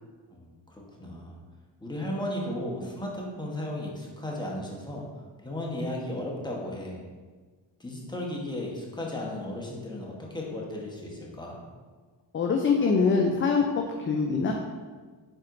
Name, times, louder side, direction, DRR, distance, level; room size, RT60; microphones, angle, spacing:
voice 1, 0.3-1.3 1.8-5.0 5.4-7.0 7.8-11.6, left 1 dB, 10° left, -3 dB, 1.0 m, -35 dB
voice 2, 12.3-14.5, left 5 dB, 30° left, 2 dB, 0.4 m, -24 dB
4.4 x 4.2 x 2.5 m, 1.4 s
cardioid pair, 65°, 45 cm